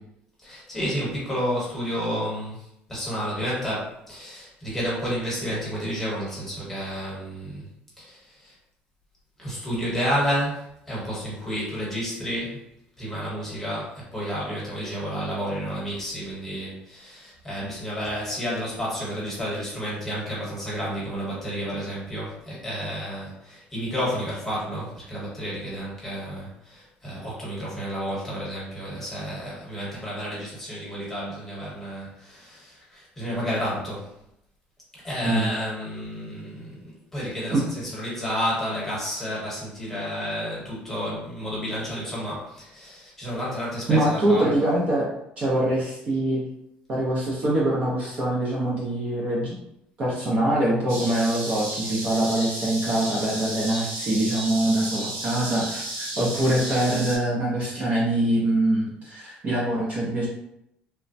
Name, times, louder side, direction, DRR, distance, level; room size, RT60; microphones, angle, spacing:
voice 1, 0.4-2.6 2.9-7.6 8.0-8.2 9.4-12.6 13.0-34.1 34.9-44.5, equal, 5° left, -7 dB, 1.0 m, -31 dB
voice 2, 43.9-45.1 45.4-46.4 46.9-49.5 50.0-60.3, right 1 dB, 35° right, -5 dB, 0.5 m, -24 dB
sound 1, 50.9-57.2, right 1 dB, 70° right, 1.0 m, -33 dB
3.1 x 2.1 x 2.6 m, 0.80 s
cardioid pair, 170°, 4 cm